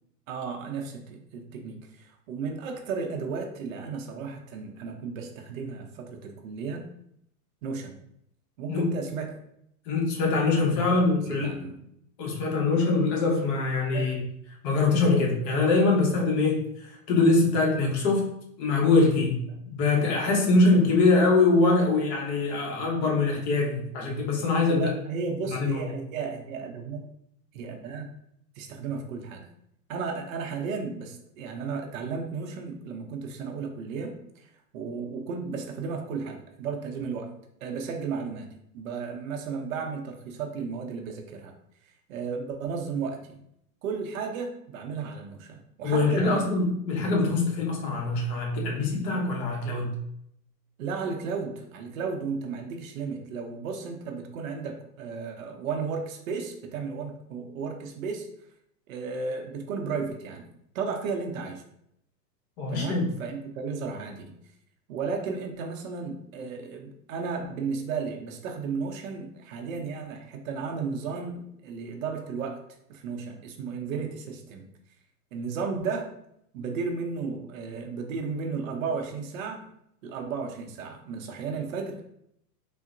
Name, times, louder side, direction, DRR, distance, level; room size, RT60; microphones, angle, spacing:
voice 1, 0.3-6.9 7.6-8.0 8.6-9.4 10.8-11.0 11.3-11.8 13.9-14.1 19.5-19.6 24.7-27.1 27.5-28.1 28.6-29.5 29.9-37.3 37.6-41.5 41.8-43.4 43.8-46.5 50.8-58.3 58.9-60.5 60.7-61.6 62.7-64.4 64.9-72.6 72.9-74.7 75.3-76.1 76.5-79.7 80.0-82.0, right 5 dB, 55° right, 3 dB, 0.6 m, -34 dB
voice 2, 9.9-11.5 12.2-14.2 14.6-18.3 18.6-19.4 19.7-24.9 25.4-25.8 45.8-50.0 62.6-63.1, left 3 dB, 40° left, 0 dB, 0.9 m, -23 dB
3.7 x 2.0 x 2.5 m, 0.74 s
hypercardioid pair, 125°, 49 cm